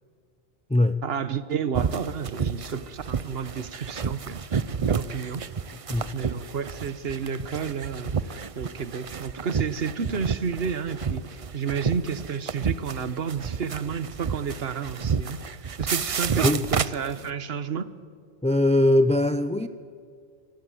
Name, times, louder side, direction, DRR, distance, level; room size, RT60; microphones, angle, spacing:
voice 1, 1.0-5.4 6.1-15.4 15.8-17.9, right 6 dB, 60° right, 15 dB, 1.3 m, -31 dB
sound 1, 1.7-17.3, right 6 dB, 40° right, 0.6 m, -30 dB
voice 2, 18.4-19.7, left 1 dB, 10° left, 12 dB, 0.4 m, -21 dB
26.0 x 19.5 x 7.7 m, 2.4 s
omnidirectional pair, 1.2 m